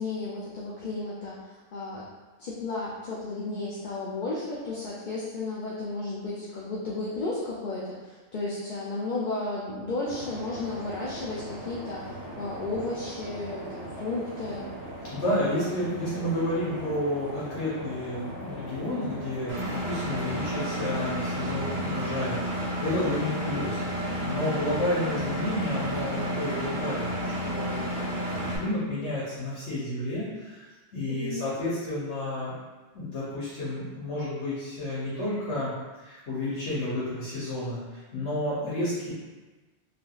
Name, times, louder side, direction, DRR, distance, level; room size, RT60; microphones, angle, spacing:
voice 1, 0.0-2.1 2.4-14.7 31.1-31.4, left 2 dB, 55° left, -6 dB, 0.5 m, -33 dB
sound 1, 10.0-28.5, equal, 90° right, 1.3 m, -40 dB
voice 2, 15.1-32.5 32.9-35.7 36.0-39.1, left 1 dB, 80° left, -9 dB, 1.1 m, -31 dB
Engine, 19.5-28.6, equal, 55° right, 1.0 m, -31 dB
3.3 x 2.5 x 2.3 m, 1.2 s
omnidirectional pair, 1.1 m